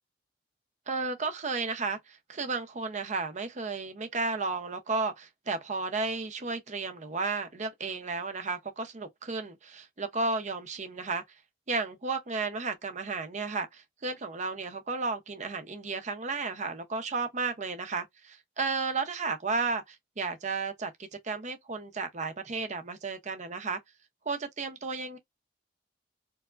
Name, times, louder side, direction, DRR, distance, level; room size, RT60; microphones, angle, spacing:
voice 1, 0.9-11.2 11.7-23.8 24.3-25.2, right 4 dB, 40° right, 0.7 m, -33 dB
4.6 x 2.1 x 2.5 m
head